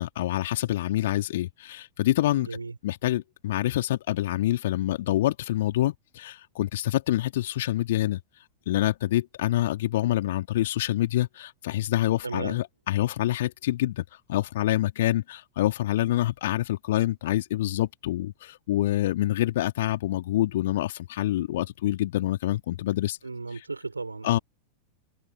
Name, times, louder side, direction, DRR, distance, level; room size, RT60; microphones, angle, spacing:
voice 1, 0.0-2.5 2.8-8.2 8.7-14.0 14.3-23.2 23.5-23.6 24.2-24.4, left 14 dB, 55° left, 2.7 m, -26 dB
voice 2, 2.4-2.7 12.2-12.6 15.1-15.2 23.2-24.4, right 3 dB, 80° right, 4.4 m, -35 dB
figure-of-eight pair, 90°, 0 cm